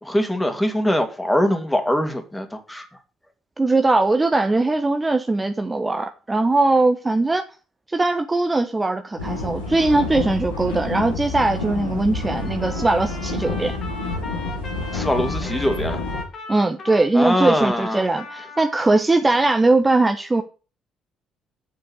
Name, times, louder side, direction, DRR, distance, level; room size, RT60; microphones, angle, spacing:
voice 1, 0.0-2.8 14.9-16.0 17.1-18.1, left 1 dB, 10° left, 2.5 m, -22 dB
voice 2, 3.6-7.4 7.9-13.7 16.5-20.4, right 2 dB, 20° right, 1.1 m, -20 dB
sound 1, 9.2-16.2, left 2 dB, 90° left, 2.8 m, -28 dB
Trumpet, 12.1-19.0, left 4 dB, 50° left, 2.8 m, -38 dB
7.5 x 7.2 x 6.6 m
figure-of-eight pair, 45°, 0 cm